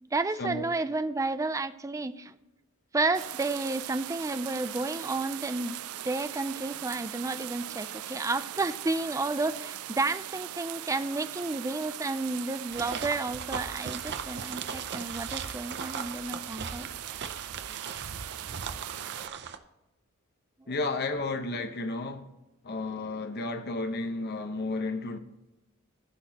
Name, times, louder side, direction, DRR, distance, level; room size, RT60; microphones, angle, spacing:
voice 1, 0.0-2.3 2.9-5.8 6.0-16.9, right 3 dB, 15° right, 0.4 m, -31 dB
sound 1, 3.1-19.3, right 12 dB, 85° right, 0.4 m, -40 dB
sound 2, 12.7-19.6, right 6 dB, 50° right, 0.7 m, -38 dB
voice 2, 20.7-22.3 22.6-25.2, left 2 dB, 50° left, 1.0 m, -32 dB
15.0 x 6.2 x 2.9 m
head